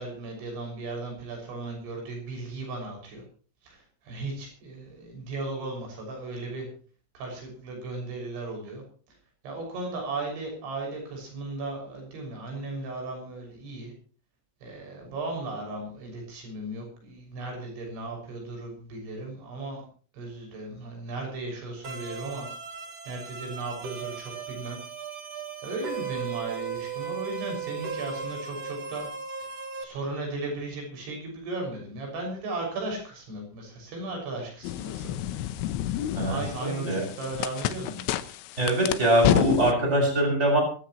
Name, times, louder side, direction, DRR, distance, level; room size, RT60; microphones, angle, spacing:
voice 1, 0.0-3.2 3.6-6.7 7.2-8.8 9.4-13.9 14.6-19.9 20.1-22.5 23.1-24.8 25.6-29.1 29.4-29.5 29.8-35.2 35.8-38.1, right 2 dB, 80° right, 1 dB, 8.7 m, -36 dB
sound 1, 21.8-29.8, right 6 dB, 40° right, 3.2 m, -37 dB
sound 2, 34.6-39.7, left 12 dB, 85° left, 3.3 m, -29 dB
voice 2, 36.1-37.0 38.6-40.6, right 1 dB, 15° right, 1 dB, 6.8 m, -23 dB
23.5 x 15.0 x 3.1 m, 0.41 s
omnidirectional pair, 5.3 m